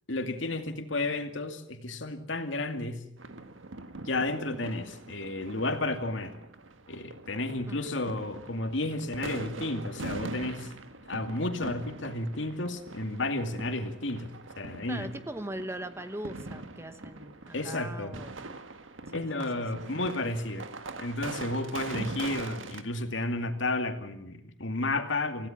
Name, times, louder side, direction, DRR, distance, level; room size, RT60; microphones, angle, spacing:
voice 1, 0.1-3.1 3.9-6.3 6.9-10.7 11.1-15.1 17.5-18.2 19.1-20.6 21.0-25.5, left 2 dB, 75° left, 6 dB, 2.4 m, -32 dB
sound 1, 3.2-22.8, right 2 dB, 90° right, 1.7 m, -42 dB
voice 2, 14.9-18.4 19.1-19.9, right 1 dB, 15° right, 10 dB, 1.0 m, -40 dB
25.5 x 16.5 x 7.3 m, 0.72 s
head